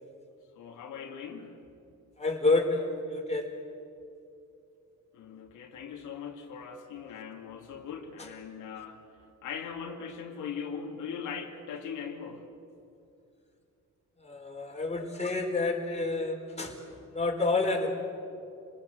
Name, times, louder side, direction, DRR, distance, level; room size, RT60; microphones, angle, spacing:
voice 1, 0.5-1.6 5.1-9.0 9.4-12.5, left 6 dB, 85° left, 1 dB, 2.7 m, -40 dB
voice 2, 2.2-3.6 14.2-17.9, left 3 dB, 20° left, 1 dB, 4.5 m, -29 dB
29.5 x 19.5 x 7.9 m, 2.6 s
cardioid pair, 90°, 30 cm